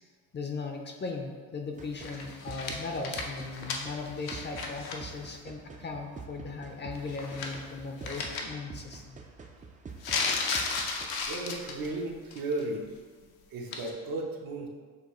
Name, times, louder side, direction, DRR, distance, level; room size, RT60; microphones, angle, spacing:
voice 1, 0.3-9.2, left 4 dB, 30° left, 2 dB, 0.5 m, -38 dB
sound 1, 1.8-11.1, right 5 dB, 20° right, 0.4 m, -47 dB
sound 2, 2.0-5.0 5.3-5.4 7.0-7.7 8.0-8.4 10.0-11.9 12.3-12.6 13.7-13.9, left 4 dB, 70° left, 0.7 m, -34 dB
voice 2, 11.3-12.9 13.2-14.7, right 2 dB, 65° right, 0 dB, 0.8 m, -35 dB
6.3 x 2.3 x 3.0 m, 1.5 s
cardioid pair, 80°, 38 cm